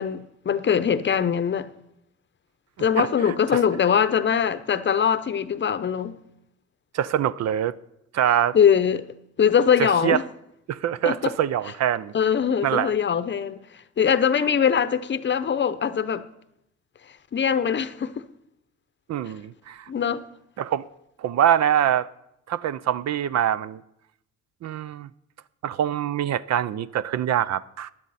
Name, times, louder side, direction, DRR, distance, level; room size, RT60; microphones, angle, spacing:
voice 1, 0.0-1.7 2.8-6.2 8.5-9.1 9.4-10.2 11.0-11.3 12.1-13.6 14.0-16.2 17.3-18.2 19.9-20.2, left 7 dB, 40° left, 0.7 m, -22 dB
voice 2, 3.0-3.3 6.9-7.8 8.1-8.6 9.8-10.2 10.7-12.1 12.6-12.9 19.1-19.9 20.6-20.8 21.2-22.1 22.5-23.8 24.6-25.1 25.6-27.9, right 10 dB, 60° right, 0.5 m, -24 dB
16.0 x 10.5 x 4.1 m
cardioid pair, 90°, 30 cm